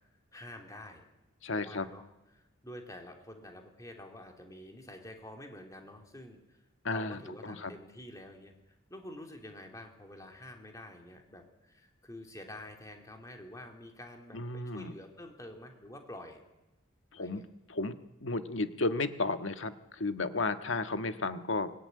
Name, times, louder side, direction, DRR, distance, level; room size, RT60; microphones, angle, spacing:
voice 1, 0.3-1.0 1.5-2.0 2.3-6.6 6.9-16.4 17.2-17.4, left 1 dB, 15° left, 3 dB, 3.2 m, -48 dB
voice 2, 1.4-1.9 6.8-7.7 14.3-14.9 17.1-17.4 17.7-18.0 18.2-21.7, left 3 dB, 70° left, 9 dB, 1.6 m, -33 dB
24.5 x 19.5 x 9.7 m, 0.95 s
head